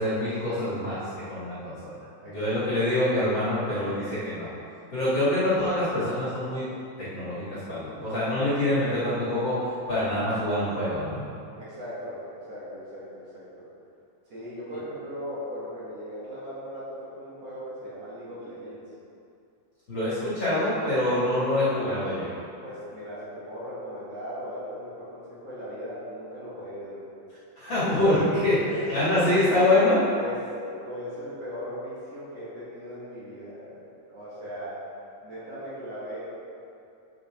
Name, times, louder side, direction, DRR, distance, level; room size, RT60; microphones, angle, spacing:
voice 1, 0.0-2.0 2.2-4.5 4.9-6.7 7.0-9.6 9.9-11.2 19.9-22.3 27.6-30.0, left 1 dB, 40° left, -11 dB, 2.5 m, -25 dB
voice 2, 2.2-2.6 11.6-13.6 14.3-18.9 22.6-27.1 28.5-29.2 30.2-34.8 35.2-36.4, equal, 50° right, -10 dB, 2.9 m, -38 dB
11.5 x 5.5 x 3.7 m, 2.6 s
omnidirectional pair, 3.9 m